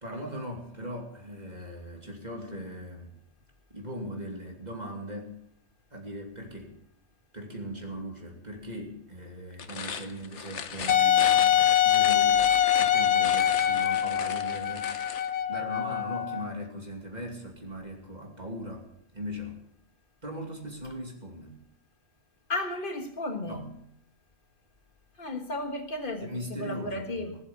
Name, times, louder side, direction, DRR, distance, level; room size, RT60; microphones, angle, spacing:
voice 1, 0.0-3.1 3.7-5.4 5.9-6.8 7.3-12.5 12.8-19.6 20.2-21.6 23.4-23.7 26.2-27.4, equal, 40° right, 1 dB, 2.7 m, -39 dB
sound 1, 9.5-15.3, left 6 dB, 90° left, 1.3 m, -38 dB
Wind instrument woodwind instrument, 10.9-16.5, left 10 dB, 70° left, 0.9 m, -24 dB
voice 2, 22.5-23.7 25.2-27.3, left 2 dB, 50° left, 5 dB, 1.9 m, -34 dB
19.0 x 8.0 x 7.2 m, 0.74 s
omnidirectional pair, 1.2 m